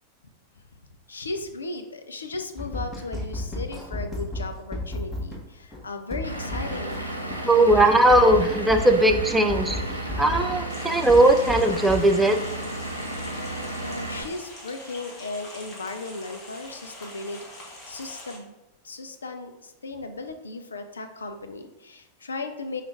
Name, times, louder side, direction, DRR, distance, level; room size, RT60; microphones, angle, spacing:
voice 1, 1.1-7.0 13.8-18.5 18.8-22.8, left 3 dB, 75° left, 7 dB, 0.4 m, -36 dB
sound 1, 2.6-5.4 5.7-5.8 6.1-7.0 7.3-7.4 7.7-10.6 10.9-12.0, left 1 dB, 10° left, 1.0 m, -32 dB
Vehicle / Engine, 6.2-14.2, right 1 dB, 90° right, 0.6 m, -33 dB
voice 2, 7.4-9.8 10.2-12.4, right 1 dB, 5° right, 5 dB, 0.4 m, -18 dB
sound 2, 10.7-18.4, left 1 dB, 30° left, 1.2 m, -43 dB
5.1 x 2.4 x 3.4 m, 0.90 s
figure-of-eight pair, 90°, 0 cm